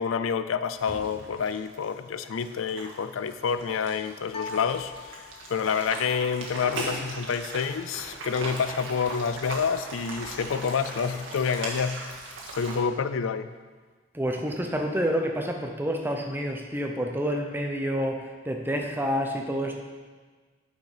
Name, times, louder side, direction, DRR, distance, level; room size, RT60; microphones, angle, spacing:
voice 1, 0.0-12.2 12.5-13.5, left 6 dB, 85° left, 12 dB, 0.4 m, -28 dB
sound 1, 0.8-12.8, right 2 dB, 75° right, 1.8 m, -39 dB
sound 2, 4.3-5.8, left 5 dB, 30° left, 0.4 m, -41 dB
voice 2, 14.1-19.8, equal, 10° right, 2 dB, 0.8 m, -28 dB
8.9 x 6.6 x 4.9 m, 1.4 s
head